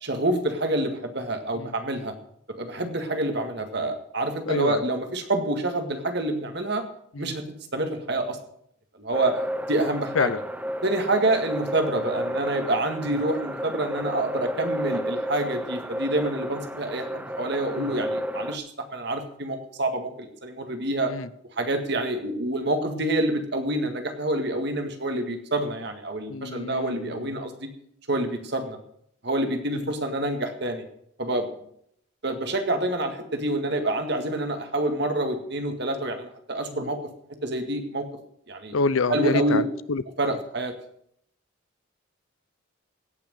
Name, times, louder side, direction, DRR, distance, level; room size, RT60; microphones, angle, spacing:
voice 1, 0.0-2.1 2.6-6.8 7.2-7.4 7.7-8.4 9.0-9.4 9.7-10.3 10.8-21.1 21.6-27.7 28.1-28.8 29.2-30.8 31.2-31.5 32.2-37.0 37.4-38.1 38.5-38.7 39.1-39.6 40.2-40.7, right 1 dB, 55° right, 6 dB, 1.8 m, -27 dB
voice 2, 4.5-4.8 7.1-7.3 10.1-10.4 13.1-13.2 17.8-17.9 21.1-21.3 26.3-27.4 29.7-29.9 36.7-36.9 38.7-40.0 40.3-40.4, left 4 dB, 80° left, 17 dB, 0.6 m, -28 dB
sound 1, 9.1-18.6, equal, 5° right, 0.6 m, -32 dB
16.5 x 6.0 x 7.6 m, 0.69 s
head